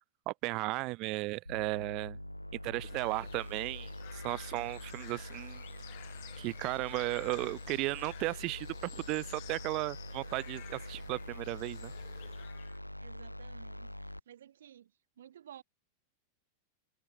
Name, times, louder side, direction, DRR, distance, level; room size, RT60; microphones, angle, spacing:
voice 1, 0.3-2.2 2.6-5.6 6.4-11.9, right 23 dB, 40° right, 0.8 m, -35 dB
sound 1, 1.5-14.2, equal, 90° left, 3.5 m, -45 dB
sound 2, 2.8-12.8, left 38 dB, 45° left, 7.6 m, -52 dB
voice 2, 13.0-14.9 15.2-15.6, right 10 dB, 60° right, 4.1 m, -54 dB
figure-of-eight pair, 90°, 0 cm